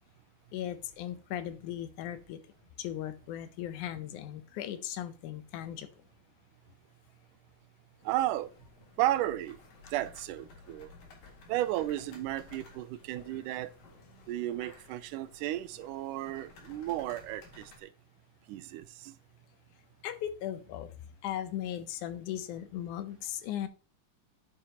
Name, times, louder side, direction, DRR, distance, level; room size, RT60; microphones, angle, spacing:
voice 1, 0.5-2.4 2.8-5.9 20.0-20.9 21.2-23.7, left 11 dB, 75° left, 2.1 m, -37 dB
sound 1, 8.0-17.8, left 3 dB, 55° left, 3.2 m, -55 dB
voice 2, 8.0-8.5 9.0-9.6 9.9-10.9 11.5-13.7 14.3-17.9 18.5-19.2, right 14 dB, 80° right, 2.0 m, -33 dB
8.7 x 8.3 x 2.9 m
omnidirectional pair, 3.8 m